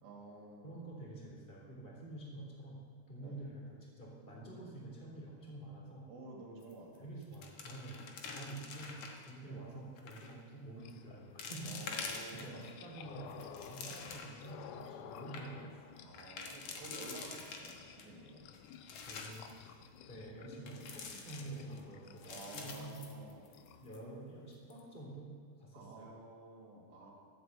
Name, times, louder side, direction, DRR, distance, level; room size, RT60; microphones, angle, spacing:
voice 1, 0.0-0.8 3.2-3.4 6.1-7.1 9.4-9.7 11.7-12.6 14.8-15.0 16.0-18.5 22.3-23.5 25.0-25.2 25.7-27.1, right 2 dB, 70° right, -2 dB, 4.1 m, -51 dB
voice 2, 0.6-2.8 3.1-6.1 7.0-16.0 18.9-19.8 20.1-23.0 23.8-25.3 25.6-26.1, right 2 dB, 15° left, -3 dB, 2.7 m, -48 dB
sound 1, 6.6-7.0 7.2-9.3 10.0-10.3 10.9-11.0 11.4-12.7 13.2-14.5 14.9-15.0 15.2-15.4 16.1-18.1 18.5-19.5 20.7-21.8 22.2-23.7 23.9-24.0 24.5-24.8, left 5 dB, 60° left, 2.0 m, -46 dB
sound 2, 10.8-24.0, left 8 dB, 90° left, 1.8 m, -54 dB
14.0 x 8.1 x 8.0 m, 2.2 s
omnidirectional pair, 4.6 m